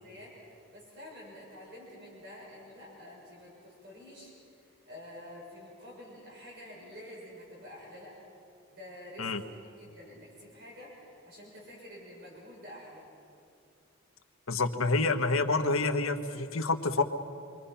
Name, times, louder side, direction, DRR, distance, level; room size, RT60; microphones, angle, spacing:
voice 1, 0.0-4.3 4.9-8.2 8.7-9.3 9.6-13.1, left 1 dB, 50° right, -4 dB, 6.9 m, -48 dB
voice 2, 14.5-17.0, left 3 dB, 85° left, 6 dB, 1.4 m, -28 dB
27.5 x 24.0 x 5.8 m, 2.6 s
head